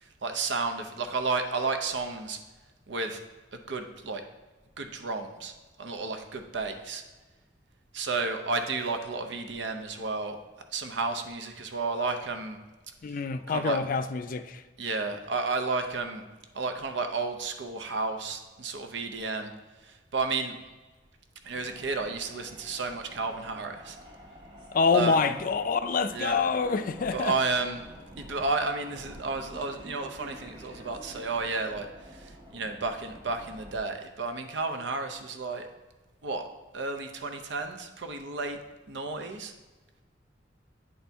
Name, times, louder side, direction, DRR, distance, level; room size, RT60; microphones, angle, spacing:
voice 1, 0.0-2.4 2.9-3.2 3.5-4.2 4.8-5.5 5.8-7.0 7.9-10.4 10.7-12.6 13.5-13.8 14.8-16.2 16.5-19.5 19.8-20.6 21.4-24.0 24.9-25.3 26.1-26.4 27.1-27.8 28.2-35.7 36.2-36.5 36.7-38.6 38.9-39.5, right 3 dB, 75° right, 0.7 m, -32 dB
voice 2, 13.0-14.6 24.7-27.4, left 5 dB, 50° left, 0.4 m, -26 dB
sound 1, 21.5-33.8, equal, 25° right, 0.9 m, -48 dB
9.3 x 4.2 x 3.4 m
head